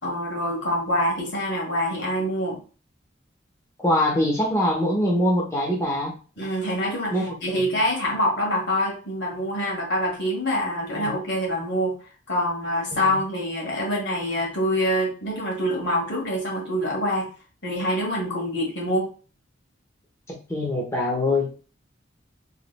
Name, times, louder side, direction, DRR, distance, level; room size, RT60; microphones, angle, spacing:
voice 1, 0.0-2.6 6.4-11.9 12.3-17.3 17.6-19.1, equal, 65° left, -1 dB, 1.9 m, -25 dB
voice 2, 3.8-6.1 7.1-7.6 10.9-11.1 12.9-13.1 20.5-21.5, left 1 dB, 15° left, -2 dB, 1.1 m, -23 dB
4.7 x 3.5 x 2.3 m, 0.36 s
head